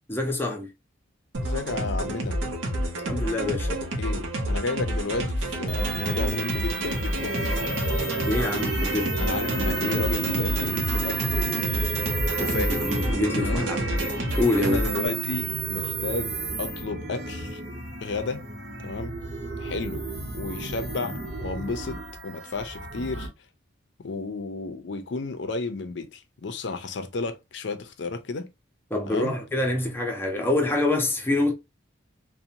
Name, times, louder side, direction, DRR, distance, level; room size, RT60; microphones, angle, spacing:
voice 1, 0.1-0.7 3.1-3.7 8.2-9.1 12.5-13.8 14.4-14.8 28.9-31.5, left 2 dB, 10° left, 0.5 m, -26 dB
sound 1, 1.3-15.1, right 1 dB, 85° right, 0.6 m, -29 dB
voice 2, 1.4-2.4 3.7-7.8 9.2-12.0 12.4-12.9 13.4-13.7 14.6-17.6 18.0-18.5 18.8-19.1 19.6-20.1 20.3-23.3 24.0-28.5 29.1-29.3, left 3 dB, 65° left, 0.5 m, -32 dB
sound 2, 5.7-23.3, right 2 dB, 60° right, 0.9 m, -31 dB
2.6 x 2.1 x 2.7 m
head